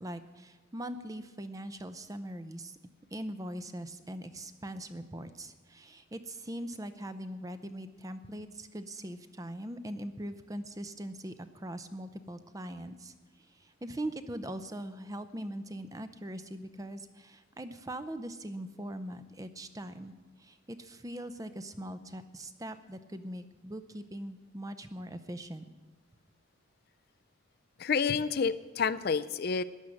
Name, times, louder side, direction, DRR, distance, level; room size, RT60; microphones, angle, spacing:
voice 1, 0.0-2.8 3.1-25.7, right 1 dB, 15° right, 11 dB, 0.6 m, -41 dB
voice 2, 27.8-29.6, left 5 dB, 50° left, 13 dB, 0.4 m, -29 dB
14.5 x 10.5 x 6.4 m, 1.3 s
head